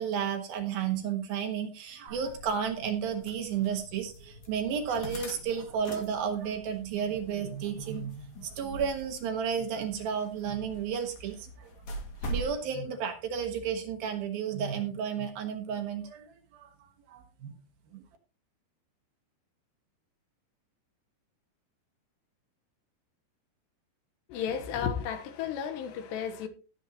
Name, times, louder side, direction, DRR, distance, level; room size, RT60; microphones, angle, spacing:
voice 1, 0.0-11.7 12.3-16.7 17.1-17.5 17.9-18.0, right 7 dB, 65° right, 3.0 m, -32 dB
sound 1, 2.1-12.5, right 1 dB, 50° left, 3.0 m, -43 dB
voice 2, 24.3-26.5, left 7 dB, 80° left, 3.3 m, -33 dB
17.0 x 8.3 x 2.9 m
omnidirectional pair, 5.0 m